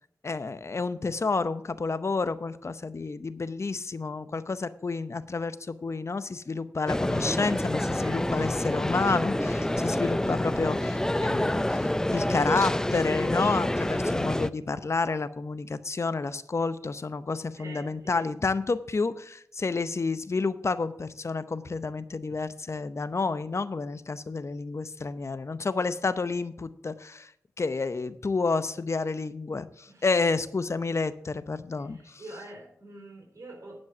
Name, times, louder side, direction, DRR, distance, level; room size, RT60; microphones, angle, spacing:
voice 1, 0.2-27.3 27.6-32.2, left 4 dB, 50° left, 14 dB, 0.7 m, -30 dB
sound 1, 6.9-14.5, left 1 dB, 10° left, 0.5 m, -27 dB
voice 2, 17.6-18.2 29.9-30.1 31.8-33.8, right 1 dB, 60° right, 0 dB, 4.1 m, -45 dB
10.5 x 5.4 x 7.0 m, 0.71 s
cardioid pair, 45°, 6 cm